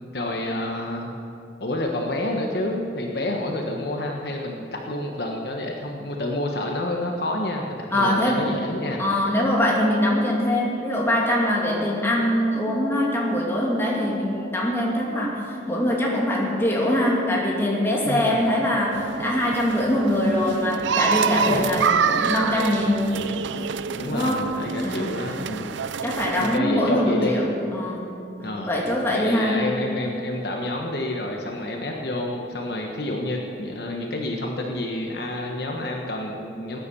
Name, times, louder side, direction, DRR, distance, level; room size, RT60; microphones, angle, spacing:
voice 1, 0.1-1.1 1.6-9.0 18.0-18.4 21.4-21.7 23.9-25.7 26.4-27.4 28.4-28.7 29.1-36.8, left 1 dB, 55° left, 1 dB, 1.3 m, -29 dB
voice 2, 7.9-8.4 9.0-23.1 24.1-24.5 24.8-25.2 26.0-28.1 28.7-29.6, left 1 dB, 15° left, -3 dB, 2.6 m, -23 dB
sound 1, 18.9-26.6, right 6 dB, 75° right, 0.5 m, -27 dB
19.0 x 10.0 x 7.1 m, 2.8 s
head